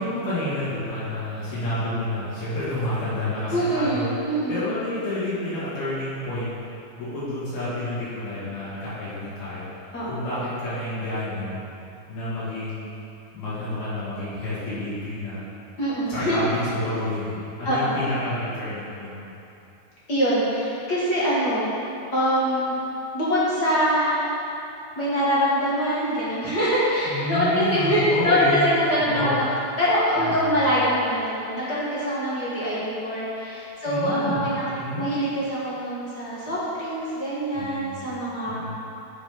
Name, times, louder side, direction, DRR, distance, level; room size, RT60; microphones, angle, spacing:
voice 1, 0.0-4.1 4.5-6.6 7.0-9.7 10.1-11.6 12.1-12.9 13.3-15.4 16.1-19.3 27.1-28.6 29.0-29.3 30.4-30.6 33.9-34.4 34.7-35.1 37.5-38.1 38.5-38.8, left 1 dB, 80° left, -11 dB, 4.1 m, -29 dB
voice 2, 3.5-4.6 9.9-10.2 15.8-16.4 17.6-17.9 20.1-21.7 22.1-22.7 23.1-24.3 25.0-29.5 29.8-34.7 35.0-38.6, equal, 50° left, -9 dB, 1.2 m, -24 dB
9.5 x 5.3 x 5.3 m, 2.8 s
omnidirectional pair, 4.3 m